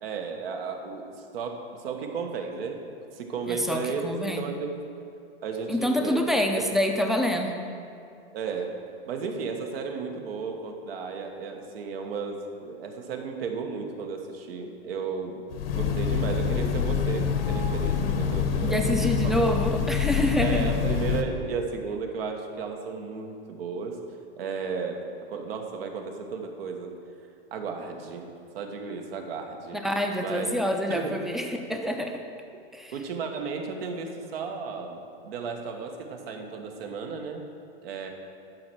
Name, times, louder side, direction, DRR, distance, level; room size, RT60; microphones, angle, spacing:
voice 1, 0.0-4.7 5.4-6.6 8.3-8.7 9.1-15.4 15.7-19.4 20.4-24.0 24.4-26.9 27.5-28.3 28.5-29.8 30.2-30.5 30.9-31.2 32.9-35.0 35.2-37.4 37.8-38.1, right 5 dB, 75° right, 4 dB, 1.3 m, -34 dB
voice 2, 3.5-4.5 5.7-7.6 18.6-20.7 29.7-32.2 32.7-32.9, equal, ahead, 3 dB, 0.4 m, -27 dB
Train, 15.5-21.2, left 7 dB, 70° left, 1.0 m, -26 dB
10.5 x 4.4 x 6.1 m, 2.5 s
hypercardioid pair, 130°, 30 cm